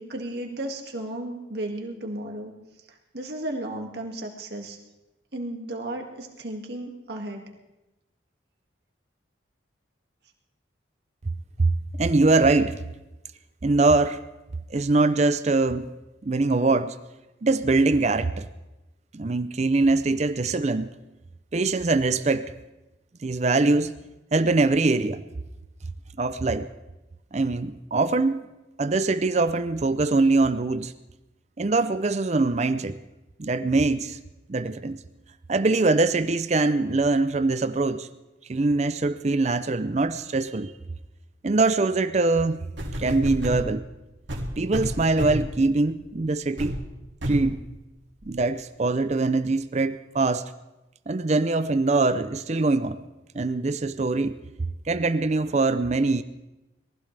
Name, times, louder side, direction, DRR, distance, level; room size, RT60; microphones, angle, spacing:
voice 1, 0.0-2.5 3.1-4.8 5.3-7.4, right 1 dB, 55° right, 2.1 m, -34 dB
voice 2, 12.0-12.8 13.6-14.2 14.7-15.9 16.2-16.9 17.4-18.5 19.1-20.9 21.5-22.5 23.2-23.9 24.3-25.2 26.2-26.7 27.3-28.4 28.8-30.9 31.6-33.0 33.4-34.2 34.5-35.0 35.5-38.1 38.5-40.7 41.4-42.7 43.0-43.8 44.6-46.8 47.3-47.6 48.3-50.5 51.1-53.0 53.3-54.4 54.9-56.2, right 3 dB, 35° right, 0.5 m, -23 dB
sound 1, 42.3-42.4 42.8-43.7 44.3-45.5 46.0-46.2 46.6-46.8 47.2-47.5 48.2-48.3, equal, 75° right, 2.6 m, -30 dB
22.5 x 15.5 x 3.4 m
head